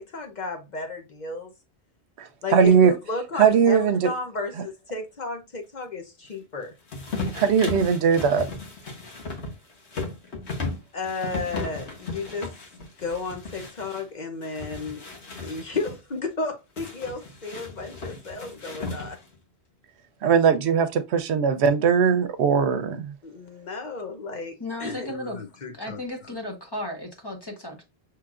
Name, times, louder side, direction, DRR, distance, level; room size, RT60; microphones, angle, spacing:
voice 1, 0.0-1.5 2.4-6.7 10.9-12.5 13.0-15.0 15.4-19.2 23.2-26.3, left 3 dB, 50° left, 0.7 m, -33 dB
voice 2, 2.2-2.9 3.4-4.1 7.3-8.5 20.2-23.1, right 6 dB, 85° right, 0.9 m, -20 dB
sound 1, 6.9-14.0 14.4-16.0 16.8-19.4, left 3 dB, 90° left, 1.4 m, -35 dB
voice 3, 24.6-25.4 25.7-27.8, left 1 dB, 25° left, 0.9 m, -34 dB
5.9 x 3.1 x 2.4 m
omnidirectional pair, 1.1 m